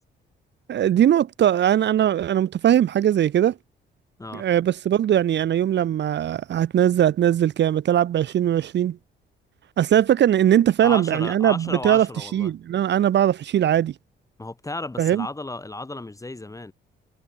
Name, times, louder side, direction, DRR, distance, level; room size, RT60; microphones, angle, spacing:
voice 1, 0.7-3.5 4.3-9.0 9.8-13.9 15.0-15.3, right 10 dB, 60° right, 1.2 m, -20 dB
voice 2, 10.8-12.5 14.4-16.7, left 2 dB, 15° left, 5.5 m, -34 dB
cardioid pair, 90°, 20 cm